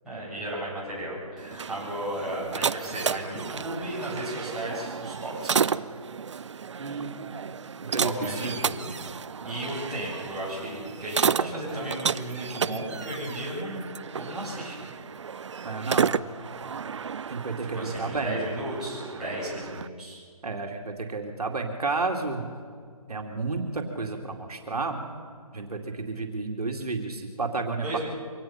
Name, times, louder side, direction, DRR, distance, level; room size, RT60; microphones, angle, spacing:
voice 1, 0.0-5.7 8.0-9.0 9.4-13.9 14.1-14.9 17.6-20.2 27.8-28.0, right 1 dB, 5° right, -12 dB, 7.6 m, -34 dB
sound 1, 1.4-19.9, right 6 dB, 50° right, 0.5 m, -32 dB
voice 2, 6.8-7.3 7.9-8.1 8.4-8.5 15.6-16.2 17.3-18.3 20.4-22.4 23.1-25.0 25.5-28.0, right 3 dB, 80° right, 2 dB, 2.6 m, -31 dB
24.0 x 18.5 x 5.8 m, 2.1 s
hypercardioid pair, 160°, 19 cm